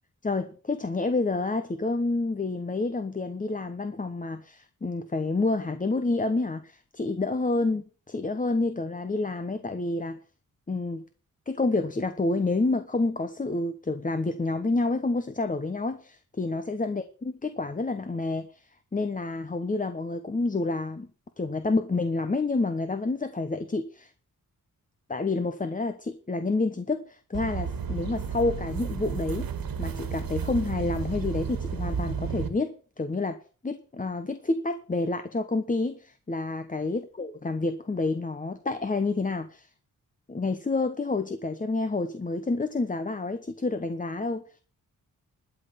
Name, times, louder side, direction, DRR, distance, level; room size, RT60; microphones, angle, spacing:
voice 1, 0.2-10.2 10.7-11.0 11.5-21.1 21.4-24.1 25.1-29.5 29.8-33.4 33.6-39.7 40.3-44.4, left 3 dB, 25° left, 9 dB, 1.1 m, -29 dB
sound 1, 27.3-32.5, right 6 dB, 75° right, 1.9 m, -32 dB
12.5 x 5.7 x 8.7 m, 0.38 s
wide cardioid pair, 115°, 35 cm